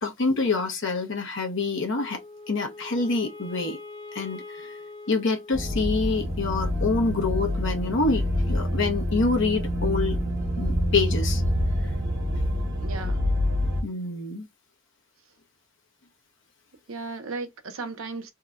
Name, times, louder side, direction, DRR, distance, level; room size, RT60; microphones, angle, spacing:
voice 1, 0.0-2.2 2.5-3.8 4.1-4.8 5.1-10.2 10.6-11.4 11.8-11.9 13.8-14.5, left 3 dB, 60° left, 0.9 m, -26 dB
Wind instrument woodwind instrument, 1.9-6.3, left 3 dB, 85° left, 1.1 m, -43 dB
sound 1, 5.5-13.8, left 1 dB, 55° right, 1.0 m, -26 dB
voice 2, 12.8-13.3 16.9-18.3, right 3 dB, 75° right, 0.8 m, -35 dB
2.8 x 2.2 x 3.5 m
head